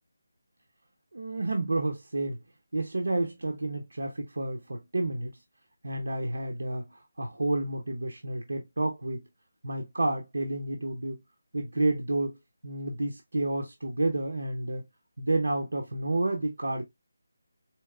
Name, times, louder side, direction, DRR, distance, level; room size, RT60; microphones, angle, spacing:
voice 1, 1.1-2.4 2.7-5.4 5.8-9.2 9.6-11.2 11.5-12.4 12.6-14.9 15.2-16.8, right 2 dB, 90° right, 0.8 m, -30 dB
4.4 x 2.9 x 2.3 m
figure-of-eight pair, 175°, 0 cm